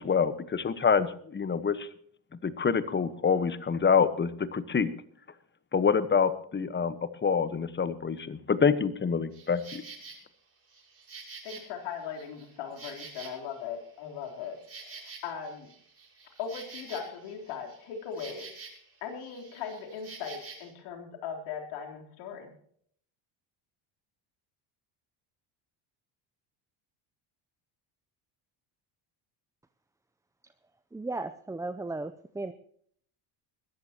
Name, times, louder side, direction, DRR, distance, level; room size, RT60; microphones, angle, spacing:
voice 1, 0.0-1.9 2.4-4.9 5.7-9.8, left 6 dB, 20° left, 13 dB, 1.2 m, -26 dB
Insect, 9.3-10.2 10.7-13.7 14.0-18.9 19.2-20.7, right 4 dB, 30° right, 5.7 m, -48 dB
voice 2, 11.4-14.6 14.8-15.7 16.4-18.5 19.0-22.6, left 7 dB, 85° left, 2 dB, 3.7 m, -39 dB
voice 3, 30.9-32.5, right 2 dB, 5° right, 10 dB, 0.5 m, -35 dB
21.0 x 14.0 x 2.9 m, 0.63 s
cardioid pair, 110°, 49 cm